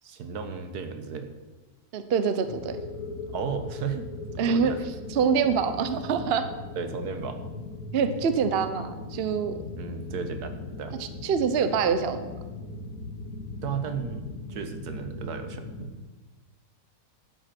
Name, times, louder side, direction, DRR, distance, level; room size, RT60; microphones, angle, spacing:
voice 1, 0.0-1.3 3.3-4.1 4.4-4.8 6.7-7.4 9.8-11.0 13.6-15.9, right 6 dB, 75° right, 8 dB, 1.5 m, -34 dB
voice 2, 1.9-2.8 4.4-4.7 5.1-6.5 7.9-9.6 11.2-12.3, right 6 dB, 50° right, 9 dB, 0.9 m, -25 dB
sound 1, 2.4-15.9, left 3 dB, 65° left, 1.7 m, -39 dB
11.5 x 7.7 x 6.0 m, 1.3 s
omnidirectional pair, 1.7 m